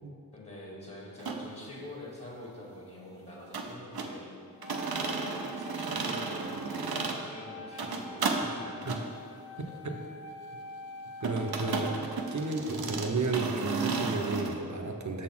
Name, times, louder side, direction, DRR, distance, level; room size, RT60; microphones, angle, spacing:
voice 1, 0.3-4.3 5.0-8.9 9.6-10.0, left 1 dB, 40° left, -4 dB, 1.3 m, -46 dB
sound 1, 1.2-1.4 3.5-4.1 4.6-7.2 7.7-8.4 8.8-9.0 11.2-14.5, right 4 dB, 85° right, 0.7 m, -33 dB
Wind instrument woodwind instrument, 4.6-12.9, left 1 dB, 75° left, 0.8 m, -46 dB
voice 2, 11.2-15.2, right 3 dB, 50° right, 4 dB, 0.7 m, -33 dB
6.5 x 4.1 x 5.9 m, 2.4 s
wide cardioid pair, 60°, 36 cm